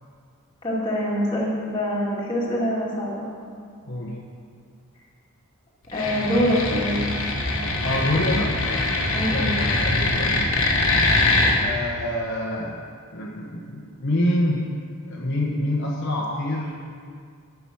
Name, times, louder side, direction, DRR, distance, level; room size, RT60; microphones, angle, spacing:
voice 1, 0.6-3.3 5.9-7.1 9.1-9.6, equal, 20° left, -6 dB, 2.3 m, -24 dB
voice 2, 3.8-4.2 7.8-8.6 9.3-10.5 11.6-12.8 13.1-14.7 15.1-16.7, left 1 dB, 55° left, -3 dB, 1.1 m, -26 dB
sound 1, 5.9-11.6, left 2 dB, 75° left, 1.4 m, -23 dB
10.5 x 6.0 x 6.3 m, 2.1 s
head